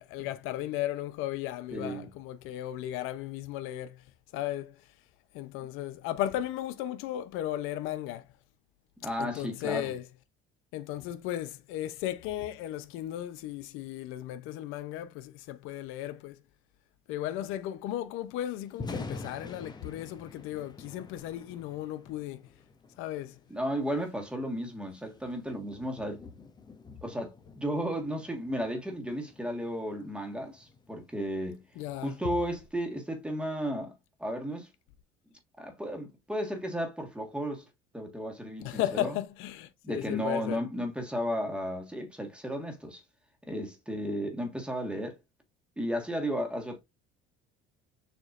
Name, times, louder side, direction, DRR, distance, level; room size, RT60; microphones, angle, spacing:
voice 1, 0.0-4.0 4.3-4.8 5.3-8.3 9.2-10.1 10.7-16.4 17.1-22.5 23.0-23.4 31.8-32.1 38.6-40.6, left 13 dB, 75° left, 0.6 m, -35 dB
voice 2, 1.7-2.1 9.0-9.9 23.5-26.2 27.0-31.6 32.0-33.9 34.2-34.7 35.6-37.7 37.9-39.1 39.8-43.0 43.5-45.2 45.8-46.8, equal, 5° right, 1.5 m, -34 dB
Thunder, 18.6-32.8, left 3 dB, 20° left, 0.8 m, -48 dB
6.8 x 2.9 x 2.4 m
cardioid pair, 115°, 21 cm